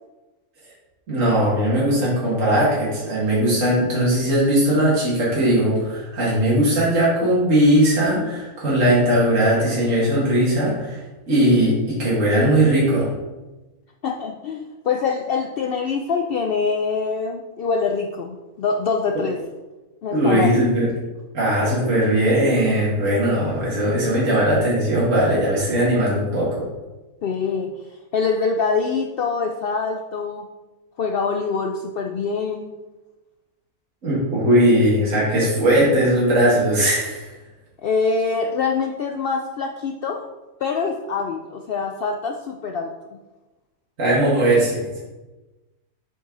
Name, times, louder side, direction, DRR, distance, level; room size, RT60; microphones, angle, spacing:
voice 1, 1.1-11.0 11.3-13.1 19.1-19.2 20.1-20.9 21.3-26.6 34.0-37.4 44.0-45.0, right 1 dB, 60° right, -7 dB, 2.3 m, -19 dB
voice 2, 14.0-19.4 20.0-20.5 27.2-27.7 28.1-30.5 31.0-32.7 37.8-40.2 40.6-43.2, left 5 dB, 80° left, 4 dB, 0.5 m, -24 dB
7.7 x 5.3 x 3.8 m, 1.1 s
omnidirectional pair, 1.5 m